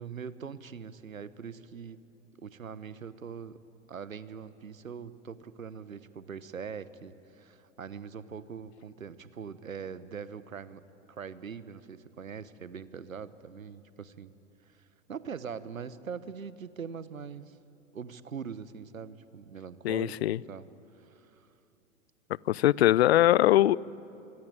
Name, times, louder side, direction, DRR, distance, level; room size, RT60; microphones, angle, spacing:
voice 1, 0.0-2.0 2.4-3.6 3.9-10.8 11.1-14.3 14.7-17.6 17.9-20.1 20.5-20.7 20.9-21.3, right 6 dB, 80° right, 16 dB, 1.1 m, -42 dB
voice 2, 19.8-20.4 22.5-23.8, left 14 dB, 50° left, 24 dB, 0.5 m, -22 dB
25.0 x 24.5 x 8.8 m, 2.8 s
figure-of-eight pair, 100°, 40 cm